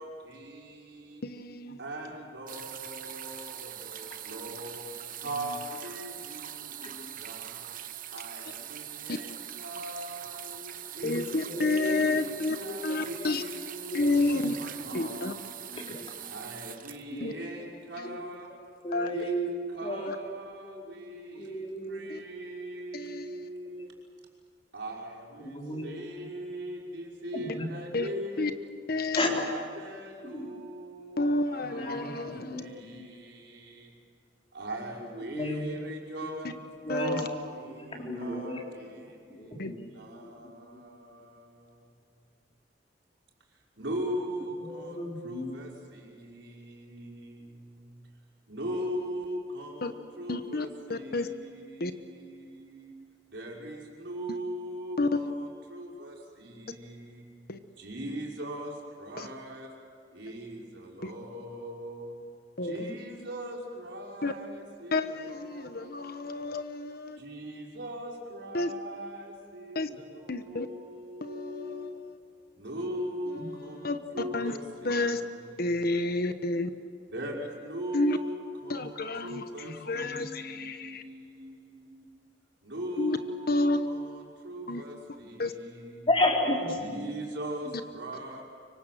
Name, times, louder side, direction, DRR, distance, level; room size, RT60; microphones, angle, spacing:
voice 1, 0.0-1.2 1.8-4.9 5.2-7.6 8.1-9.3 9.5-11.4 12.0-15.5 16.2-18.5 19.1-19.3 19.7-23.9 24.7-28.5 29.2-33.9 34.5-36.5 36.9-41.8 43.8-48.0 48.5-52.9 53.3-57.3 57.8-59.7 60.1-62.2 62.6-66.5 67.2-72.0 72.6-75.8 77.1-82.1 82.6-86.1 86.7-88.4, right 1 dB, 70° right, 5.5 m, -40 dB
voice 2, 1.2-1.8 9.1-9.2 11.0-12.6 12.8-13.4 13.9-14.5 14.9-15.3 17.2-17.3 18.0-18.2 18.9-19.1 20.1-20.2 22.1-22.2 22.9-23.5 27.9-28.1 28.4-28.5 28.9-29.2 31.2-32.7 36.9-37.3 39.6-39.7 49.8-49.9 50.3-51.3 51.8-51.9 55.0-55.3 57.5-57.6 59.2-59.3 61.0-61.1 62.6-62.9 64.2-64.3 64.9-67.2 68.5-68.7 69.7-69.9 70.3-70.7 71.2-72.2 73.3-74.0 74.3-74.6 74.8-75.2 75.6-76.7 77.9-78.2 78.7-81.0 83.0-83.2 83.5-83.9 84.7-84.8 85.4-85.5, left 2 dB, 55° left, 1.2 m, -30 dB
sound 1, 2.5-17.8 18.8-18.9, right 11 dB, 50° right, 1.0 m, -42 dB
voice 3, 11.0-12.1 12.6-13.3 13.9-14.1 14.9-15.3 15.7-16.1 17.1-17.3 18.0-18.2 18.8-19.5 19.8-20.2 20.9-21.0 21.3-22.1 25.4-26.0 27.3-27.7 28.3-28.4 29.1-29.3 30.2-30.5 31.7-33.0 35.3-35.6 36.4-36.5 36.9-37.2 37.8-38.6 39.3-40.4 40.7-40.8 44.6-45.6 73.4-73.5 73.8-74.4 79.6-79.8 80.1-80.2 86.1-86.8 87.6-87.7, left 1 dB, 30° left, 3.9 m, -33 dB
25.0 x 24.5 x 7.7 m
head